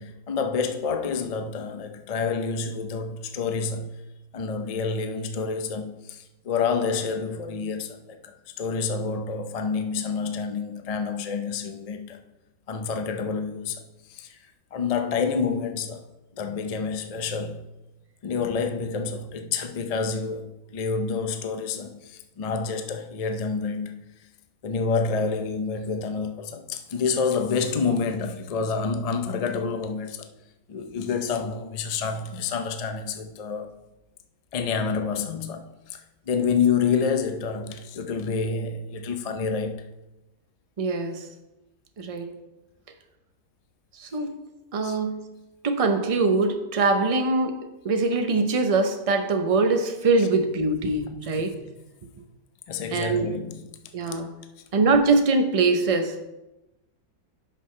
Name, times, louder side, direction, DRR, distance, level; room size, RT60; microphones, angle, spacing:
voice 1, 0.0-4.0 4.3-12.2 12.7-13.8 14.1-14.4 14.7-16.0 16.3-17.6 18.2-24.0 24.6-30.3 30.7-33.7 34.5-39.9 44.8-45.0 52.7-53.6 54.0-54.1, left 5 dB, 65° left, 0.3 m, -28 dB
voice 2, 40.8-41.3 42.0-42.3 43.9-44.4 44.7-45.3 45.6-51.6 52.9-53.3 53.9-54.3 54.7-56.2, right 3 dB, 40° right, 0.5 m, -23 dB
10.5 x 5.7 x 3.2 m
omnidirectional pair, 1.6 m